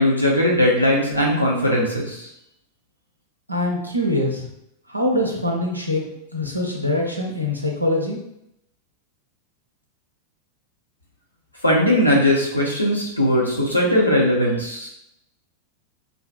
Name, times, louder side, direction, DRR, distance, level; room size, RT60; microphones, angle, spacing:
voice 1, 0.0-2.3 11.6-14.9, left 1 dB, 85° left, -3 dB, 0.7 m, -19 dB
voice 2, 3.5-4.5 4.9-6.0 6.3-8.2, left 1 dB, 90° right, 0 dB, 0.5 m, -23 dB
2.5 x 2.3 x 2.4 m, 0.78 s
figure-of-eight pair, 90°, 0 cm